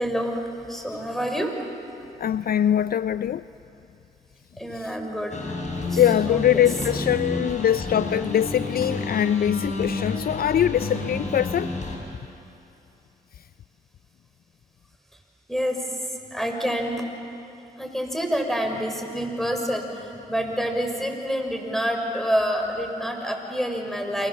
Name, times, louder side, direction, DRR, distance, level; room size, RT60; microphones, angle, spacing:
voice 1, 0.0-1.5 4.6-5.6 5.8-6.6 15.5-15.8 16.3-17.0 17.8-24.3, equal, ahead, 3 dB, 6.1 m, -27 dB
voice 2, 2.2-3.4 4.7-5.0 5.9-11.7, left 10 dB, 55° left, 15 dB, 0.5 m, -22 dB
sound 1, 5.3-12.0, left 2 dB, 40° left, 6.7 m, -30 dB
29.0 x 23.0 x 7.4 m, 2.7 s
supercardioid pair, 45°, 18 cm